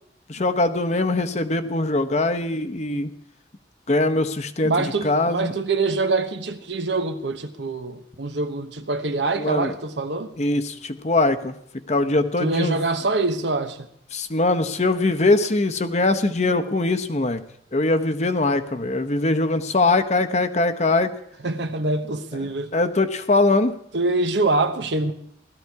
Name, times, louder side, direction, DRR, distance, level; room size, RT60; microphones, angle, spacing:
voice 1, 0.3-3.1 3.9-5.5 9.4-9.7 10.4-11.6 11.9-12.8 14.1-17.4 17.7-21.1 22.7-23.7, left 2 dB, 40° left, 0.9 m, -22 dB
voice 2, 4.6-10.3 12.4-13.8 21.4-22.7 23.9-25.1, right 3 dB, 80° right, 1.2 m, -24 dB
17.0 x 13.0 x 4.7 m
head